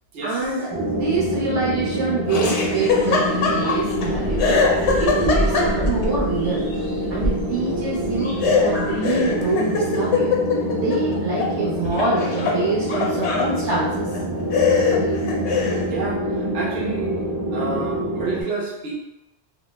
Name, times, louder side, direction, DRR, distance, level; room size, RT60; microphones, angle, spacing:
voice 1, 0.2-4.7 5.0-6.7 7.1-10.4 10.7-14.1 14.9-15.2, right 3 dB, 85° right, -8 dB, 1.2 m, -25 dB
sound 1, 0.7-18.4, right 1 dB, 35° right, 0.3 m, -26 dB
Laughter, 2.3-4.1 4.4-6.0 8.4-11.5 11.9-13.5 14.1-14.2 14.5-15.9, left 5 dB, 75° left, 0.9 m, -22 dB
sound 2, 2.9-9.5, equal, 30° left, 0.4 m, -29 dB
voice 2, 15.9-16.2 16.5-17.1 17.5-19.0, right 3 dB, 50° right, -4 dB, 0.8 m, -28 dB
2.8 x 2.0 x 3.2 m, 0.92 s
omnidirectional pair, 1.2 m